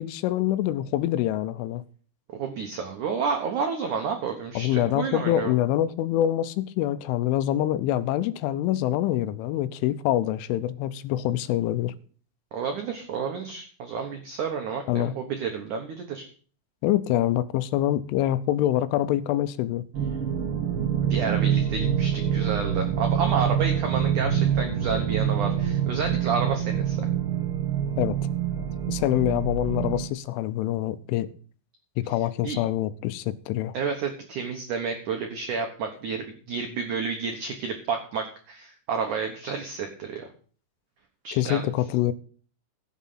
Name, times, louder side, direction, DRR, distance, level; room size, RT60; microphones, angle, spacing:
voice 1, 0.0-1.8 4.6-11.9 14.9-15.1 16.8-19.8 28.0-28.2 28.5-31.3 32.0-33.7 41.3-42.1, left 13 dB, 85° left, 3.2 m, -25 dB
voice 2, 2.3-5.5 12.5-16.3 21.0-27.0 32.4-32.6 33.7-40.3 41.2-41.6, right 5 dB, 85° right, 1.7 m, -30 dB
sound 1, 19.9-30.1, right 9 dB, 70° right, 1.3 m, -26 dB
15.5 x 7.3 x 5.7 m
omnidirectional pair, 5.5 m